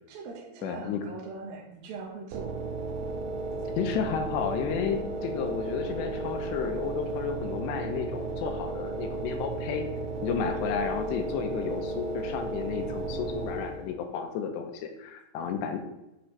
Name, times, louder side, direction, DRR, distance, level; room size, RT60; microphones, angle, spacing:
voice 1, 0.1-2.6, right 4 dB, 70° right, -2 dB, 2.4 m, -41 dB
voice 2, 0.6-1.0 3.8-9.8 10.2-15.8, left 7 dB, 80° left, 5 dB, 2.8 m, -32 dB
sound 1, 2.3-14.0, right 3 dB, 85° right, 3.1 m, -34 dB
8.2 x 6.1 x 3.3 m, 0.95 s
omnidirectional pair, 5.2 m